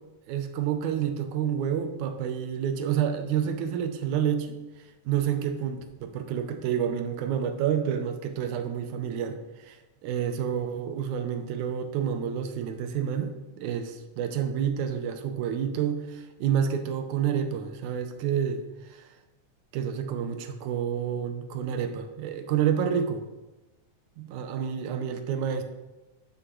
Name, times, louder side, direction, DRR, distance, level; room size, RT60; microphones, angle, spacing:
voice 1, 0.3-4.6 5.1-19.0 19.7-23.3 24.2-25.6, right 8 dB, 80° right, 7 dB, 2.1 m, -29 dB
9.9 x 6.2 x 3.1 m, 1.1 s
omnidirectional pair, 3.5 m